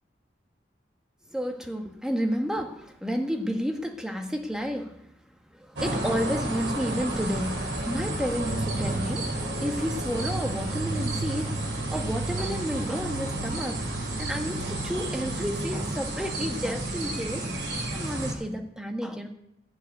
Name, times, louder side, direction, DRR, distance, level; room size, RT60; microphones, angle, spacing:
voice 1, 1.3-5.1 5.5-13.8 14.2-17.5 17.9-19.3, equal, 5° right, 4 dB, 1.2 m, -31 dB
sound 1, 5.8-18.3, right 2 dB, 85° right, 3.0 m, -31 dB
12.0 x 7.0 x 9.4 m, 0.78 s
head